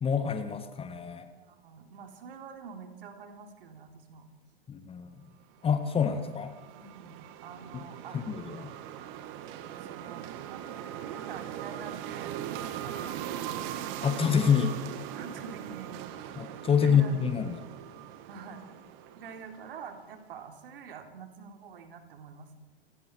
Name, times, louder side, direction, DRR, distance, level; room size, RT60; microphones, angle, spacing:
voice 1, 0.0-1.3 4.7-5.2 5.6-6.5 7.7-7.8 8.1-8.7 14.0-14.8 16.4-17.6, left 7 dB, 15° left, 9 dB, 1.7 m, -27 dB
voice 2, 1.3-4.3 6.7-8.2 9.8-12.3 12.8-13.6 15.1-16.1 16.8-17.3 18.3-18.6 19.2-22.5, right 6 dB, 60° right, 5 dB, 3.6 m, -46 dB
sound 1, 5.6-20.0, right 11 dB, 40° right, 1.9 m, -40 dB
29.0 x 19.0 x 4.7 m, 1.0 s
figure-of-eight pair, 100°, 32 cm